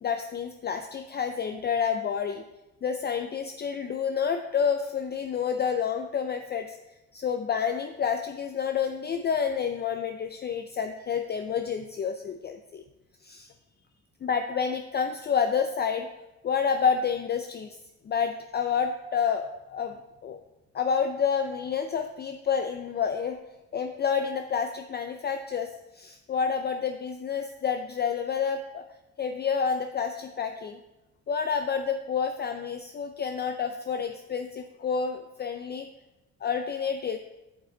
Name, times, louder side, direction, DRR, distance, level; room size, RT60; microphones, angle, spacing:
voice 1, 0.0-2.4 2.8-6.8 7.1-12.8 13.2-13.5 14.2-16.1 16.4-17.8 18.0-20.4 20.7-23.4 23.7-28.8 29.2-30.8 31.3-35.9 36.4-37.2, left 6 dB, 35° left, 6 dB, 0.4 m, -29 dB
7.4 x 5.7 x 3.8 m, 0.99 s
cardioid pair, 90°, 30 cm